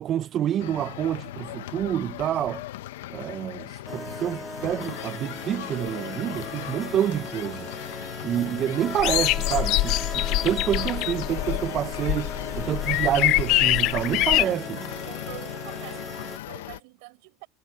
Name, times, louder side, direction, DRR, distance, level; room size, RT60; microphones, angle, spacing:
voice 1, 0.0-2.6 3.1-7.7 8.2-14.8, right 11 dB, 40° right, 0.8 m, -28 dB
sound 1, 0.6-16.8, left 15 dB, 80° left, 1.1 m, -37 dB
sound 2, 3.9-16.4, equal, ahead, 2.2 m, -39 dB
sound 3, 9.0-14.4, left 19 dB, 60° left, 0.6 m, -24 dB
voice 2, 15.1-17.5, right 29 dB, 70° right, 6.7 m, -45 dB
hypercardioid pair, 100°, 0 cm